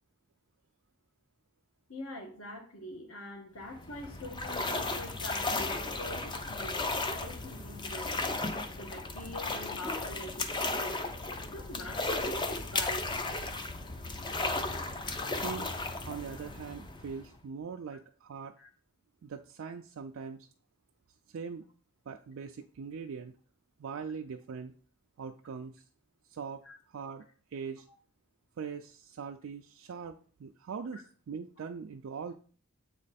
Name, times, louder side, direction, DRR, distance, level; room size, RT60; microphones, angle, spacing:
voice 1, 1.9-8.3 8.8-12.2 12.4-13.3 17.9-18.0 18.6-18.7 26.6-26.8, left 1 dB, 70° left, 3 dB, 1.3 m, -44 dB
sound 1, 3.6-17.4, left 2 dB, 20° left, 0.5 m, -35 dB
voice 2, 15.3-15.8 16.0-18.5 19.2-20.5 21.3-21.7 22.1-23.3 23.8-24.7 25.2-25.8 26.3-26.6 26.9-27.8 28.6-32.3, right 6 dB, 65° right, 3 dB, 0.4 m, -41 dB
7.3 x 3.2 x 4.1 m, 0.42 s
head